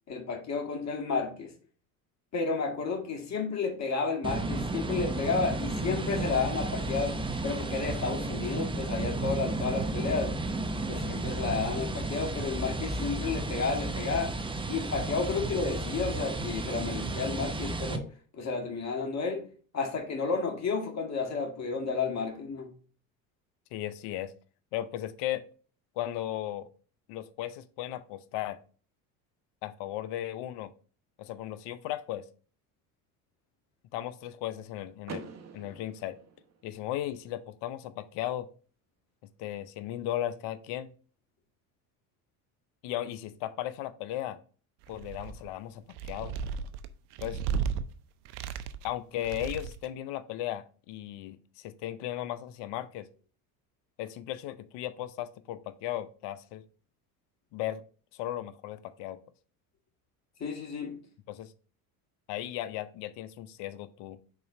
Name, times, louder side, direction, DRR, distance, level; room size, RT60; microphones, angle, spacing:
voice 1, 0.1-1.5 2.3-10.4 10.9-14.4 14.7-18.1 18.3-19.5 19.7-22.7 60.4-61.0, left 4 dB, 35° left, 2 dB, 1.9 m, -32 dB
sound 1, 4.2-18.0, right 2 dB, 10° right, 0.6 m, -33 dB
voice 2, 23.7-24.3 24.7-25.4 26.0-26.7 27.1-28.6 29.6-30.7 31.2-32.2 33.9-36.2 36.6-38.5 39.4-40.9 42.8-44.4 44.9-46.4 47.2-47.4 48.8-53.1 54.0-56.6 57.5-57.8 58.1-59.2 61.3-61.5 62.3-64.2, left 13 dB, 65° left, 14 dB, 0.7 m, -36 dB
Car / Door, 35.0-37.0, right 5 dB, 35° right, 1.1 m, -45 dB
sound 2, 44.8-45.5 45.9-47.8 48.3-48.9 49.2-49.9, right 7 dB, 80° right, 0.7 m, -34 dB
4.9 x 4.0 x 4.8 m, 0.40 s
supercardioid pair, 85°, 45 cm